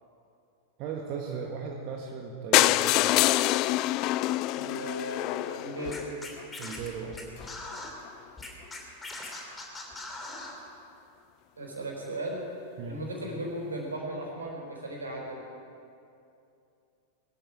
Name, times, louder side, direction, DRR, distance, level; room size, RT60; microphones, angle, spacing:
voice 1, 0.8-3.1 6.6-7.2 12.8-13.0, right 6 dB, 40° right, 0 dB, 1.6 m, -37 dB
sound 1, 2.5-6.4 7.1-7.2 7.4-7.5 7.8-7.9 8.1-8.2, left 17 dB, 40° left, 0.3 m, -25 dB
voice 2, 4.5-6.1 11.6-12.4 12.8-15.4, right 1 dB, 75° right, -1 dB, 4.6 m, -36 dB
Scratching (performance technique), 5.8-7.9 8.4-10.6, left 2 dB, 15° left, 3.0 m, -40 dB
22.0 x 13.5 x 4.8 m, 2.6 s
figure-of-eight pair, 90°, 0 cm